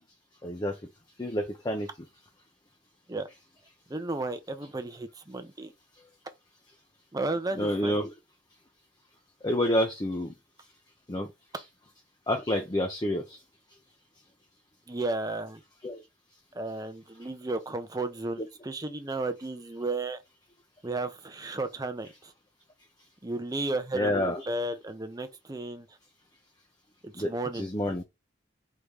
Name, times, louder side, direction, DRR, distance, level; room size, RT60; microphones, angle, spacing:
voice 1, 0.4-0.7 1.2-1.9 7.6-8.1 9.4-10.3 11.1-11.3 12.3-13.2 15.8-16.0 23.9-24.4 27.2-28.0, left 1 dB, 20° left, 0.6 m, -28 dB
voice 2, 3.9-5.7 7.1-8.0 14.9-15.6 16.5-20.2 20.8-22.3 23.2-24.2 24.5-25.9 27.0-27.7, right 2 dB, 20° right, 0.6 m, -33 dB
4.6 x 2.7 x 3.4 m
head